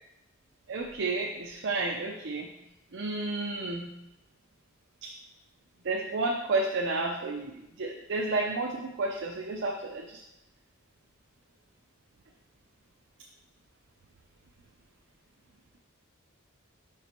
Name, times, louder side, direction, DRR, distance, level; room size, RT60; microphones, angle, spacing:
voice 1, 0.7-2.5 2.9-3.9 5.8-10.2, right 3 dB, 60° right, 1 dB, 0.6 m, -31 dB
5.9 x 4.7 x 4.4 m, 0.91 s
head